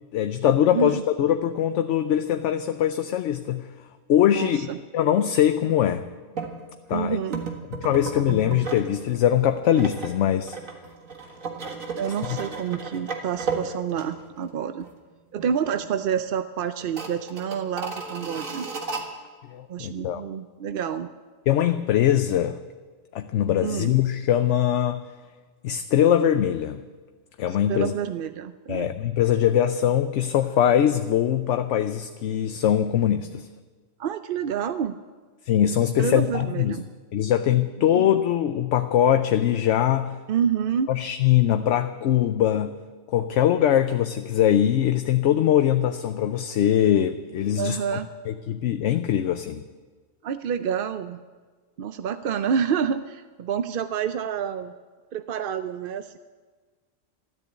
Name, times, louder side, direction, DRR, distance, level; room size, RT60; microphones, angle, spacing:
voice 1, 0.1-3.6 4.1-6.0 6.9-7.2 7.8-10.6 12.3-12.4 19.5-20.2 21.5-22.6 23.1-25.0 25.6-26.8 27.4-27.9 28.7-33.5 35.5-36.8 37.1-40.2 40.9-42.8 43.1-47.8 48.3-49.6, left 10 dB, 65° left, 9 dB, 0.9 m, -22 dB
voice 2, 4.3-4.8 6.9-7.4 12.0-14.9 15.3-18.7 19.7-21.1 23.6-23.9 27.5-28.9 34.0-35.0 36.0-36.9 37.9-38.1 40.3-40.9 47.6-48.1 50.2-51.2 51.8-54.7 55.1-56.2, right 8 dB, 60° right, 10 dB, 0.6 m, -28 dB
sound 1, 6.3-6.5 7.3-8.9 9.2-14.5 14.8-14.9 15.4-15.9 16.2-16.3 16.8-19.0, right 4 dB, 80° right, 2.1 m, -34 dB
13.5 x 12.5 x 8.1 m, 1.4 s
omnidirectional pair, 1.4 m